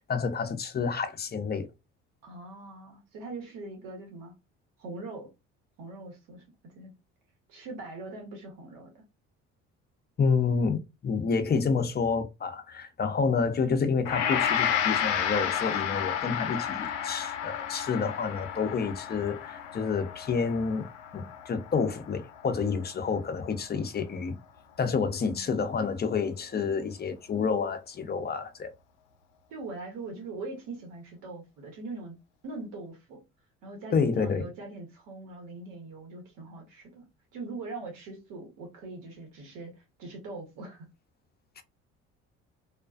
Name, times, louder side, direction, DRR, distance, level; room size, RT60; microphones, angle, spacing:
voice 1, 0.1-1.7 10.2-20.8 21.1-24.3 24.8-28.7 33.9-34.5 41.6-41.7, left 5 dB, 30° left, 0.6 m, -29 dB
voice 2, 2.2-4.3 4.8-5.3 5.8-6.4 6.7-6.9 7.5-9.0 25.3-25.5 29.5-32.1 32.4-33.2 33.6-37.0 37.3-39.7 40.0-40.9, right 3 dB, 75° right, 1.2 m, -41 dB
Gong, 14.0-23.2, left 9 dB, 85° left, 0.5 m, -31 dB
2.4 x 2.3 x 2.4 m
hypercardioid pair, 65°, 34 cm